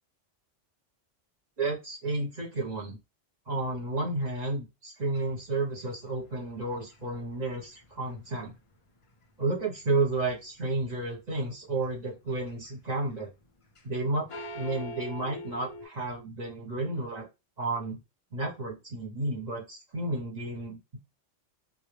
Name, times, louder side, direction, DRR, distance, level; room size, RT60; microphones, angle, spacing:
voice 1, 1.6-3.0 3.5-8.6 9.4-13.3 13.8-14.3 14.5-17.3 17.6-18.0 18.3-21.0, right 2 dB, 40° right, -3 dB, 0.7 m, -32 dB
sound 1, 5.1-9.2 9.5-10.4 10.9-11.4 11.7-14.0 14.3-15.9, equal, 45° left, 0.4 m, -44 dB
2.1 x 2.0 x 3.0 m, 0.26 s
omnidirectional pair, 1.3 m